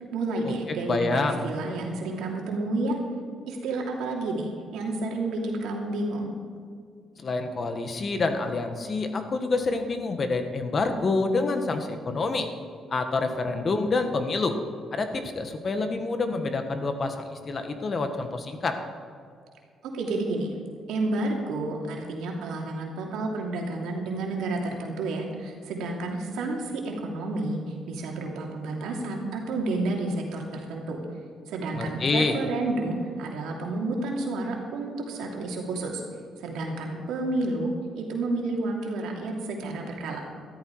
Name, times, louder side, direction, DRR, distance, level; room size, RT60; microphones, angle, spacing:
voice 1, 0.1-3.0 3.5-6.3 19.8-20.5 20.9-31.0 31.5-36.0 36.4-40.2, right 2 dB, 90° right, 0 dB, 2.8 m, -30 dB
voice 2, 0.8-1.5 7.2-12.5 12.9-14.6 14.9-18.8 31.7-32.4, left 3 dB, 40° left, 7 dB, 1.6 m, -27 dB
13.5 x 13.0 x 4.8 m, 2.2 s
cardioid pair, 90°, 0 cm